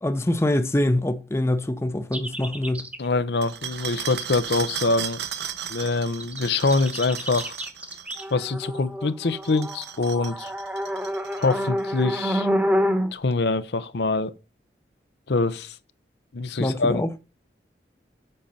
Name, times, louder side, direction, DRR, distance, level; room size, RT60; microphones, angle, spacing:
voice 1, 0.0-2.9 16.6-17.2, left 1 dB, 15° left, 0.6 m, -24 dB
sound 1, 2.1-3.1 6.2-13.1, equal, 10° right, 0.9 m, -28 dB
voice 2, 3.0-5.2 5.7-7.6 8.3-10.5 11.4-12.5 13.1-14.3 15.3-15.7 16.3-17.0, left 3 dB, 70° left, 0.7 m, -24 dB
sound 2, 3.4-8.3 9.3-11.8, right 9 dB, 70° right, 0.8 m, -35 dB
7.7 x 5.3 x 5.7 m
head